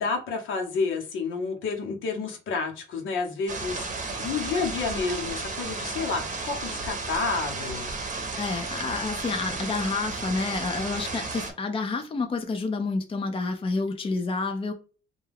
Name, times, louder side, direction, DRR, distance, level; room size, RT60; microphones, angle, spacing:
voice 1, 0.0-3.9 4.2-7.9, left 4 dB, 80° left, 0.9 m, -30 dB
sound 1, 3.5-11.5, right 3 dB, 40° right, 0.7 m, -33 dB
voice 2, 8.4-14.7, left 3 dB, 25° left, 0.5 m, -29 dB
2.3 x 2.2 x 3.3 m
cardioid pair, 90°, 20 cm